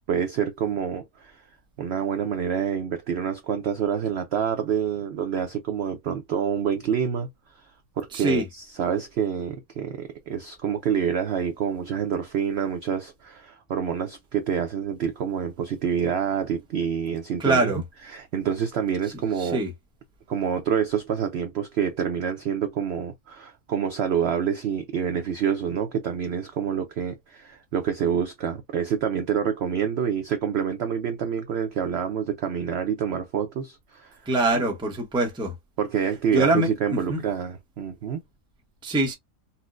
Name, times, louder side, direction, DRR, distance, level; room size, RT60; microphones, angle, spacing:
voice 1, 0.1-1.4 1.8-7.3 8.0-19.6 20.3-34.2 34.5-34.7 35.8-38.2, right 8 dB, 80° right, 0.5 m, -27 dB
voice 2, 8.1-8.4 17.4-17.8 19.4-19.7 34.3-35.5 36.3-37.2 38.8-39.1, right 2 dB, 5° right, 0.4 m, -24 dB
4.2 x 2.0 x 2.4 m
omnidirectional pair, 1.7 m